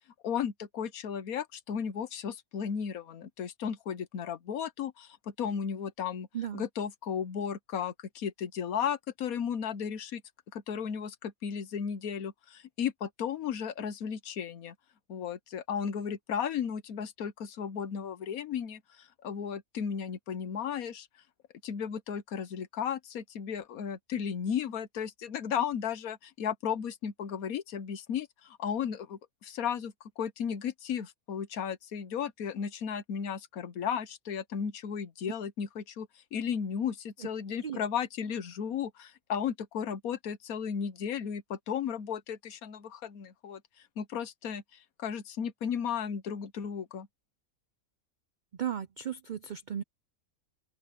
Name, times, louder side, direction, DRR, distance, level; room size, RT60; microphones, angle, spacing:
voice 1, 0.2-6.3 6.5-10.2 10.5-14.7 15.1-21.1 21.6-43.6 44.0-47.1, left 7 dB, 90° left, 1.4 m, -35 dB
voice 2, 6.3-6.7 37.2-37.3 37.6-37.9 48.5-49.8, right 9 dB, 75° right, 0.4 m, -35 dB
open air
omnidirectional pair, 1.5 m